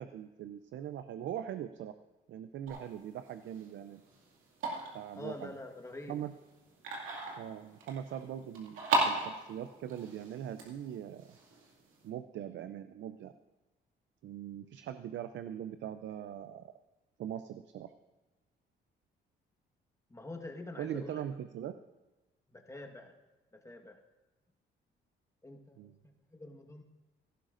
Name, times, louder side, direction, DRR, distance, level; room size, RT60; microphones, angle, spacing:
voice 1, 0.0-1.9 2.3-4.0 4.9-5.6 6.1-6.3 7.3-11.3 12.0-13.3 14.2-16.7 17.2-17.9 20.8-21.8 25.8-26.0, right 10 dB, 70° right, 10 dB, 0.5 m, -41 dB
sound 1, 2.7-12.1, right 2 dB, 90° right, 2.3 m, -38 dB
voice 2, 5.2-6.2 20.1-21.2 22.5-23.1 23.6-24.0 25.4-26.8, left 2 dB, 15° left, 2 dB, 1.4 m, -46 dB
17.0 x 11.5 x 2.6 m, 1.1 s
cardioid pair, 90°, 20 cm